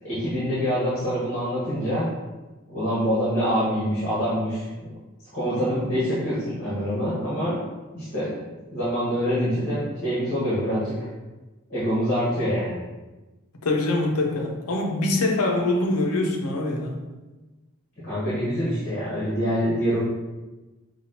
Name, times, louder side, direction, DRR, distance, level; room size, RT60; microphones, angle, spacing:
voice 1, 0.0-2.1 2.7-4.9 5.3-7.6 7.9-8.4 8.7-11.0 11.7-12.8 18.0-20.0, equal, 40° left, -10 dB, 1.3 m, -25 dB
voice 2, 13.6-17.0, left 2 dB, 85° left, 1 dB, 0.7 m, -24 dB
5.8 x 2.4 x 2.8 m, 1.2 s
head